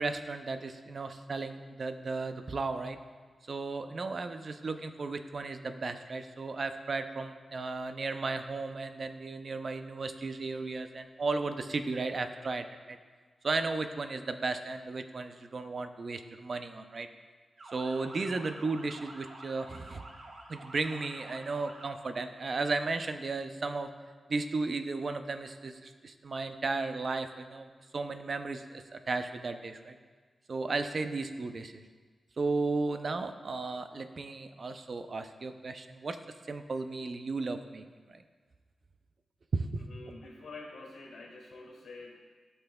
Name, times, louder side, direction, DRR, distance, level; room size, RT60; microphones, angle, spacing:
voice 1, 0.0-3.0 3.5-13.0 13.4-17.1 17.7-20.0 20.5-23.9 24.3-27.7 27.9-30.0 30.5-31.8 32.4-36.2 36.5-37.8 38.1-38.2 39.5-39.6 40.1-40.2, right 3 dB, 50° right, 8 dB, 0.5 m, -35 dB
Motor vehicle (road) / Siren, 17.6-21.9, right 2 dB, 70° right, 1.4 m, -49 dB
voice 2, 39.8-42.2, left 3 dB, 90° left, 0 dB, 1.8 m, -47 dB
15.0 x 5.6 x 2.3 m, 1.5 s
wide cardioid pair, 85°, 0 cm